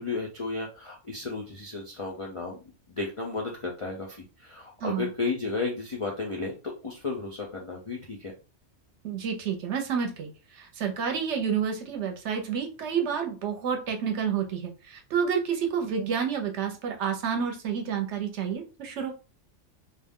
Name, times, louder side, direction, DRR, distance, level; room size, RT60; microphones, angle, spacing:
voice 1, 0.0-2.6 2.9-8.3, left 3 dB, 50° left, -1 dB, 0.3 m, -33 dB
voice 2, 9.0-19.1, right 7 dB, 70° right, 4 dB, 0.9 m, -29 dB
2.5 x 2.1 x 3.5 m, 0.33 s
omnidirectional pair, 1.3 m